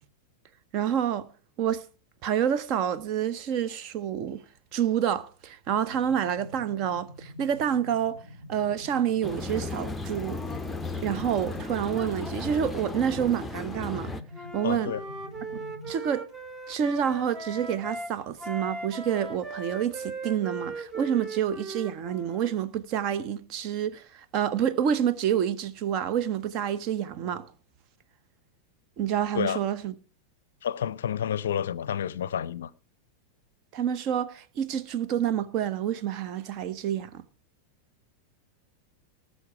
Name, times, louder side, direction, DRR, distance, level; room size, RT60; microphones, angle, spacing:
voice 1, 0.7-1.3 1.6-1.9 2.2-4.4 4.7-8.2 8.5-10.4 11.0-14.1 14.5-14.9 15.9-16.3 16.7-27.5 29.0-29.9 33.7-37.2, right 9 dB, 40° right, 0.9 m, -28 dB
sound 1, 5.9-15.9, left 1 dB, 75° right, 2.5 m, -46 dB
sound 2, 9.2-14.2, left 2 dB, 5° left, 0.7 m, -35 dB
Wind instrument woodwind instrument, 14.3-18.1 18.4-22.5, right 3 dB, 20° right, 1.3 m, -38 dB
voice 2, 14.6-15.0 29.3-29.6 30.6-32.7, left 9 dB, 60° left, 0.5 m, -29 dB
19.0 x 6.6 x 4.7 m
figure-of-eight pair, 90°, 0 cm